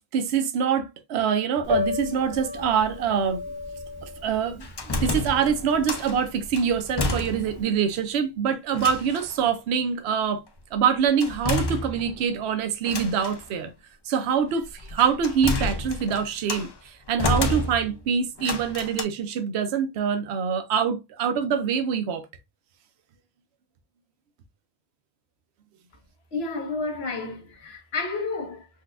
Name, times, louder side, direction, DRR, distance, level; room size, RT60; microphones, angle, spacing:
voice 1, 0.0-3.4 4.0-10.4 10.7-13.7 14.1-22.2, right 7 dB, 80° right, 0.8 m, -25 dB
Piano, 1.6-7.6, left 2 dB, 30° right, 0.7 m, -33 dB
sound 1, 4.6-6.2 6.5-7.7 8.0-8.1 8.7-9.3 11.2-12.3 12.8-13.4 14.6-16.7 17.2-18.0 18.4-19.0, left 2 dB, 45° left, 0.3 m, -29 dB
voice 2, 26.3-28.7, left 3 dB, 75° left, 1.1 m, -31 dB
4.0 x 2.2 x 2.4 m
omnidirectional pair, 1.1 m